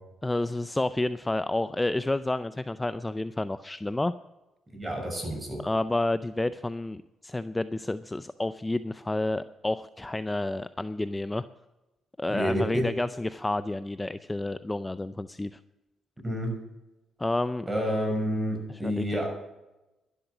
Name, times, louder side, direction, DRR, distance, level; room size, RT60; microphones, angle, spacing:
voice 1, 0.2-4.1 5.6-11.5 12.2-15.6 17.2-17.7 18.7-19.3, left 2 dB, 15° left, 13 dB, 0.4 m, -30 dB
voice 2, 4.7-5.6 12.3-12.8 16.2-16.5 17.7-19.3, equal, 15° right, 2 dB, 6.4 m, -29 dB
12.0 x 11.5 x 6.0 m, 1.0 s
cardioid pair, 90°, 0 cm